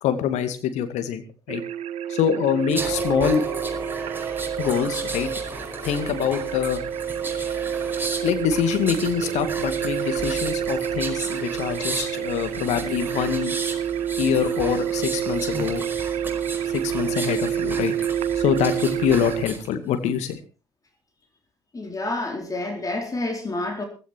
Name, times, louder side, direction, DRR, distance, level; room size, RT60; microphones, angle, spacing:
voice 1, 0.0-1.6 2.1-3.4 4.6-5.3 5.8-6.8 8.2-13.5 14.2-15.8 16.7-17.9 18.4-20.4, left 9 dB, 55° left, 9 dB, 2.2 m, -25 dB
sound 1, 1.5-19.4, right 9 dB, 50° right, 1.0 m, -28 dB
sound 2, 2.7-19.7 20.1-20.3, right 2 dB, 15° right, 5.1 m, -34 dB
voice 2, 21.7-23.8, left 2 dB, 25° left, 3 dB, 4.2 m, -28 dB
16.0 x 14.5 x 4.5 m, 0.34 s
figure-of-eight pair, 50°, 14 cm